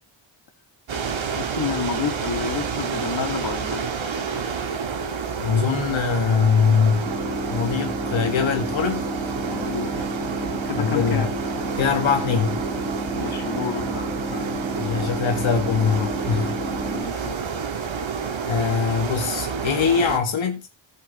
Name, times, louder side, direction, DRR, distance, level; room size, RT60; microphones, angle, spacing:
sound 1, 0.9-20.2, right 6 dB, 80° right, 2.2 m, -29 dB
voice 1, 1.3-3.9 9.5-9.9 10.3-11.3 13.1-14.1 14.3-14.5 16.6-17.4, left 7 dB, 55° left, 2.3 m, -30 dB
voice 2, 5.4-7.1 7.5-9.0 10.8-11.3 11.8-12.6 14.8-16.6 18.5-20.7, left 6 dB, 85° left, 1.9 m, -22 dB
sound 2, 7.1-17.1, left 1 dB, ahead, 0.5 m, -32 dB
15.0 x 8.1 x 3.1 m
wide cardioid pair, 130°, 46 cm